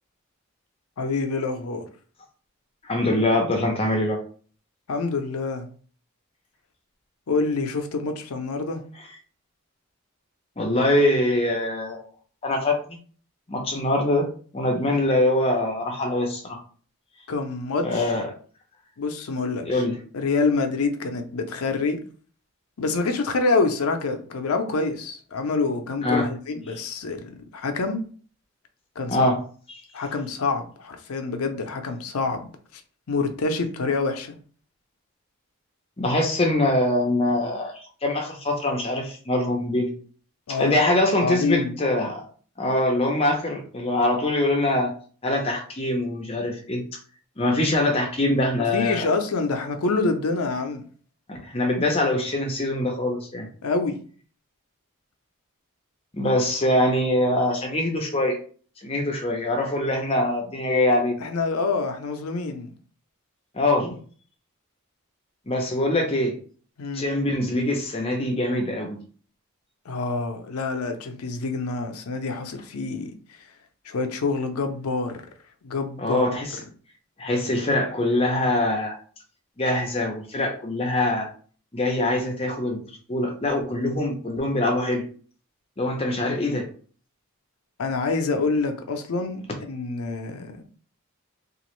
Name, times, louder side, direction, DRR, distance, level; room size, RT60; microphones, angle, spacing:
voice 1, 1.0-1.9 4.9-5.7 7.3-8.8 17.3-18.1 19.0-19.8 20.1-22.0 22.8-28.0 29.0-29.3 29.9-32.8 33.1-34.4 40.5-40.8 41.2-41.8 48.7-50.8 53.6-54.0 61.2-62.7 66.8-67.1 69.9-73.1 73.9-75.2 75.6-76.6 87.8-90.6, left 3 dB, 80° left, 0.5 m, -26 dB
voice 2, 2.8-4.2 10.6-12.0 12.4-13.0 13.5-14.3 14.5-16.6 17.8-18.3 19.6-20.0 26.0-26.3 29.1-29.4 36.0-37.7 38.0-39.9 40.6-42.3 42.6-44.9 45.2-46.8 47.4-49.1 51.3-53.5 56.1-58.4 58.8-61.2 63.5-64.0 65.5-66.4 66.9-69.0 76.0-76.6 77.2-79.0 79.6-81.3 81.7-82.8 83.1-85.0 85.8-86.7, left 1 dB, 25° left, 0.6 m, -23 dB
2.9 x 2.4 x 3.0 m
head